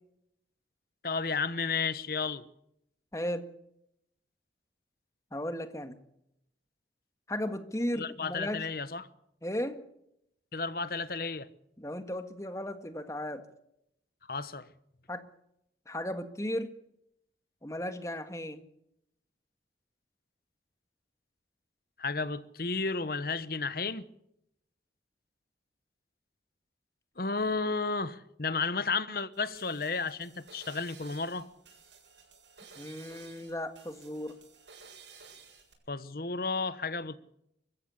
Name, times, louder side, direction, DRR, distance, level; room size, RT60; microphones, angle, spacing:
voice 1, 1.0-2.4 7.9-9.1 10.5-11.5 14.3-14.7 22.0-24.0 27.2-31.5 35.9-37.2, left 4 dB, 55° left, 1.1 m, -32 dB
voice 2, 3.1-3.5 5.3-6.0 7.3-8.7 9.4-9.8 11.8-13.5 15.1-15.2 15.9-16.7 17.6-18.6 32.8-34.4, left 1 dB, 15° left, 1.7 m, -35 dB
sound 1, 29.3-35.7, right 5 dB, 85° right, 7.6 m, -54 dB
23.5 x 15.0 x 8.3 m
head